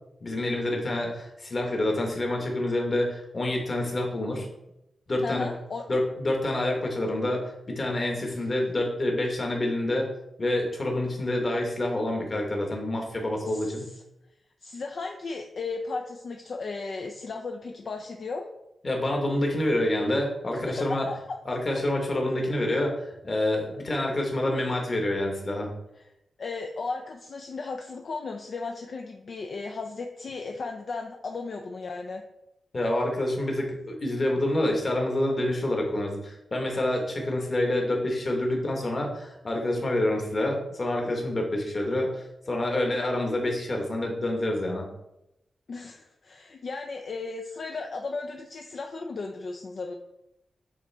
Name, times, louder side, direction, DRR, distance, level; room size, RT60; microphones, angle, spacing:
voice 1, 0.2-4.5 5.1-5.5 5.9-10.1 10.4-13.9 18.8-21.1 21.5-25.7 32.7-44.9, left 1 dB, 35° left, 1 dB, 1.4 m, -27 dB
voice 2, 5.2-5.9 8.1-8.4 13.4-14.0 14.6-18.5 20.5-21.4 26.0-26.1 26.4-32.2 45.7-49.9, left 4 dB, 50° left, 3 dB, 0.5 m, -35 dB
8.4 x 3.8 x 3.4 m, 0.85 s
wide cardioid pair, 175°, 0 cm